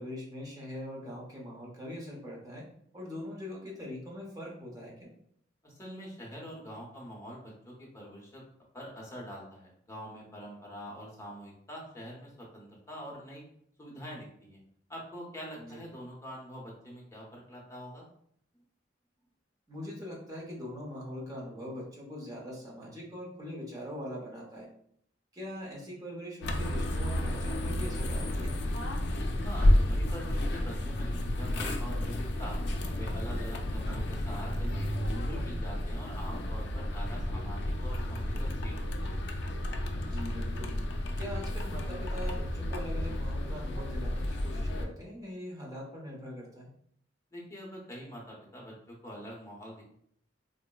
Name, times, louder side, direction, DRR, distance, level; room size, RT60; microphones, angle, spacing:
voice 1, 0.0-2.7 2.9-5.1 15.6-15.8 19.7-24.7 25.3-28.6 33.9-34.0 40.1-40.8 41.2-46.7, left 1 dB, 20° right, -3 dB, 0.8 m, -42 dB
voice 2, 5.6-8.4 8.7-13.4 13.8-14.6 14.9-18.1 29.4-34.9 35.2-39.1 47.3-49.8, equal, 15° left, -3 dB, 0.7 m, -45 dB
sound 1, 26.4-44.9, left 1 dB, 65° left, 0.4 m, -31 dB
3.8 x 2.0 x 2.2 m, 0.67 s
head